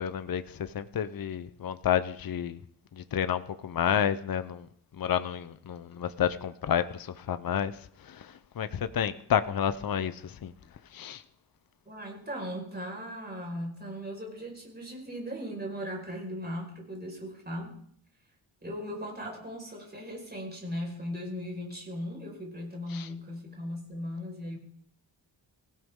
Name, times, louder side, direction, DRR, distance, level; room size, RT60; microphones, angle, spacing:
voice 1, 0.0-2.6 2.9-4.7 4.9-10.5 10.9-11.2 22.9-23.1, left 9 dB, 50° left, 12 dB, 0.7 m, -30 dB
voice 2, 11.8-17.8 18.6-24.6, equal, 20° right, 0 dB, 5.1 m, -38 dB
24.0 x 16.0 x 3.7 m, 0.65 s
wide cardioid pair, 155°, 47 cm